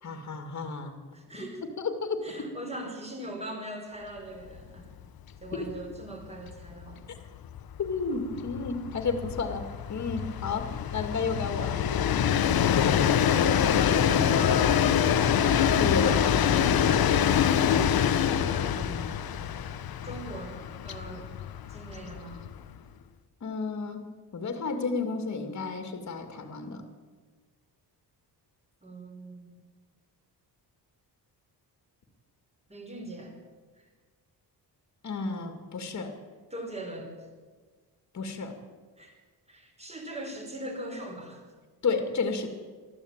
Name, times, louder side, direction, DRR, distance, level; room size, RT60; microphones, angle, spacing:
voice 1, 0.0-1.0 1.4-1.5 1.8-2.5 5.5-5.7 7.1-7.2 7.8-9.6 9.9-12.3 13.8-14.3 15.8-16.3 23.4-24.1 24.3-26.8 35.0-36.1 38.1-38.6 41.8-42.5, left 4 dB, 45° left, 6 dB, 2.6 m, -32 dB
voice 2, 1.1-1.6 2.2-4.9 5.4-7.0 14.0-15.2 17.0-17.3 18.3-19.0 20.0-20.6 20.8-21.3 21.7-22.4 28.8-29.6 32.7-33.4 33.8-33.9 36.5-37.1 39.0-39.1 39.5-41.4, right 1 dB, 15° right, 2 dB, 5.2 m, -41 dB
Train, 4.5-4.7 5.0-5.1 5.4-22.8, left 8 dB, 60° left, 1.2 m, -25 dB
23.5 x 14.5 x 9.1 m, 1.4 s
wide cardioid pair, 155°, 40 cm